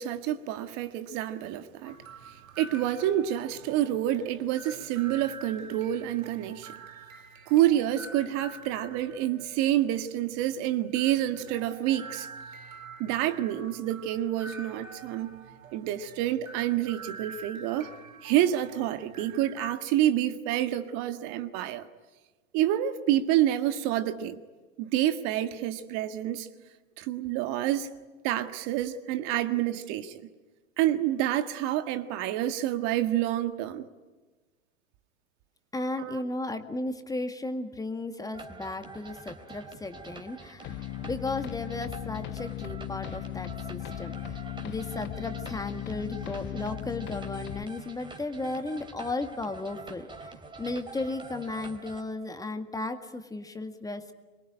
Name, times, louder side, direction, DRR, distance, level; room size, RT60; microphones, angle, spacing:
voice 1, 0.0-2.0 2.3-6.7 7.5-12.3 13.0-17.9 18.2-21.9 22.5-24.4 24.8-26.5 27.0-27.9 28.2-30.3 30.8-33.9 36.0-36.2, right 12 dB, 40° right, 1.7 m, -28 dB
sound 1, 1.8-19.8, right 4 dB, 80° right, 2.4 m, -47 dB
voice 2, 35.7-54.1, left 2 dB, 10° left, 1.8 m, -35 dB
sound 2, 38.3-52.0, right 4 dB, 10° right, 3.4 m, -46 dB
sound 3, 40.6-47.6, left 13 dB, 30° left, 0.9 m, -37 dB
25.0 x 23.0 x 9.8 m
hypercardioid pair, 110°, 40 cm